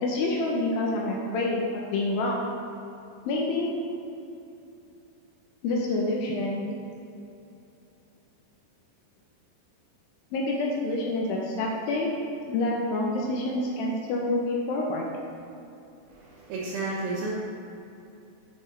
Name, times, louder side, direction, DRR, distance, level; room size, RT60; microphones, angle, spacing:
voice 1, 0.0-1.7 1.9-2.4 3.3-3.7 5.6-6.7 10.3-12.2 12.5-15.1, left 2 dB, 80° left, -1 dB, 2.1 m, -27 dB
voice 2, 16.1-17.3, right 3 dB, 75° right, -7 dB, 2.4 m, -32 dB
7.8 x 6.6 x 3.2 m, 2.7 s
omnidirectional pair, 5.1 m